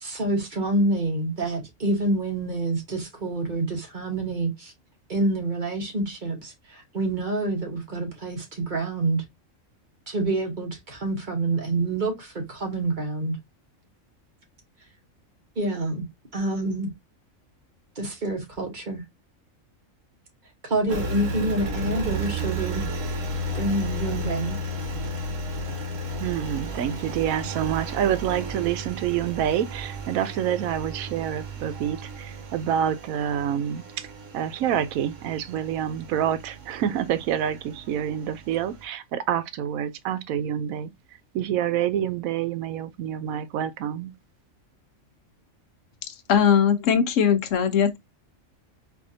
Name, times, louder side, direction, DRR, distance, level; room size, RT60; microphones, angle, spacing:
voice 1, 0.0-4.7 5.1-9.2 10.1-13.4 15.6-16.1 16.3-16.9 18.0-19.0 20.6-22.8 23.5-24.6, right 2 dB, 35° right, 1.2 m, -27 dB
Engine, 20.9-38.8, right 1 dB, 65° right, 1.3 m, -33 dB
voice 2, 26.2-34.1 34.3-40.9 41.3-44.1, right 10 dB, 90° right, 1.0 m, -27 dB
voice 3, 46.1-48.0, left 7 dB, 70° left, 1.0 m, -20 dB
4.3 x 2.7 x 2.7 m
omnidirectional pair, 1.4 m